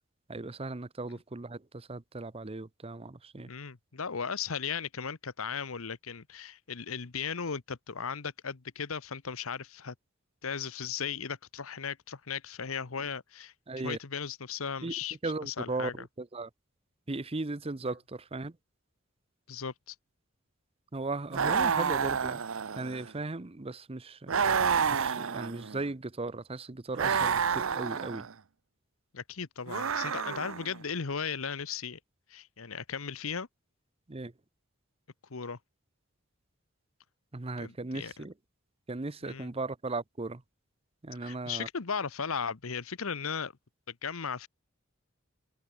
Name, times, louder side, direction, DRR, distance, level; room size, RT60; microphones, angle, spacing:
voice 1, 0.3-3.5 13.7-14.0 14.8-14.9 15.2-16.5 17.1-18.6 20.9-22.4 22.8-24.4 24.9-28.3 34.1-34.3 37.3-38.3 38.9-40.4 41.0-41.7, right 3 dB, 30° right, 0.8 m, -37 dB
voice 2, 3.4-9.9 10.4-13.5 13.8-15.2 15.4-15.9 19.5-19.9 29.1-32.0 32.3-33.5 35.3-35.6 37.6-38.2 39.2-39.5 41.2-43.5 44.0-44.5, left 6 dB, 80° left, 1.0 m, -36 dB
sound 1, 21.3-23.1 24.3-25.8 26.9-28.3 29.7-30.8, right 6 dB, 75° right, 0.7 m, -29 dB
head